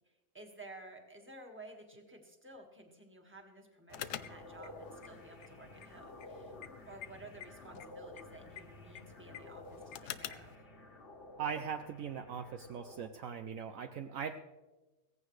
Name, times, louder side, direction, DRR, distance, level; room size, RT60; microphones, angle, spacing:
voice 1, 0.1-6.6 6.9-10.7, right 2 dB, 10° right, 2 dB, 1.6 m, -53 dB
sound 1, 3.9-10.6, left 11 dB, 80° left, 1.2 m, -49 dB
sound 2, 3.9-13.1, left 2 dB, 40° left, 1.7 m, -52 dB
voice 2, 11.4-14.4, right 7 dB, 65° right, 7 dB, 1.0 m, -40 dB
16.5 x 15.5 x 3.2 m, 1.2 s
omnidirectional pair, 1.6 m